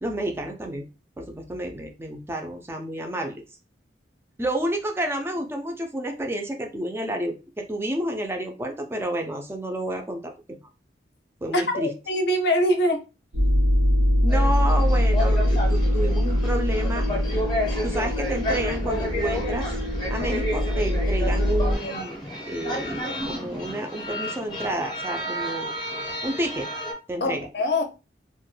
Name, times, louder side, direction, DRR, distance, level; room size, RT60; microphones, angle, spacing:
voice 1, 0.0-0.9 1.2-3.4 4.4-10.6 11.4-11.9 14.2-17.1 17.8-19.7 20.1-22.1 22.5-25.7 26.2-26.7 27.1-27.5, right 1 dB, 15° right, 0.3 m, -30 dB
voice 2, 11.5-13.0 27.2-27.8, left 1 dB, 65° left, 0.5 m, -23 dB
sound 1, 13.3-21.7, equal, 65° right, 0.6 m, -23 dB
sound 2, 14.3-26.9, equal, 25° left, 0.6 m, -32 dB
2.2 x 2.1 x 3.1 m
head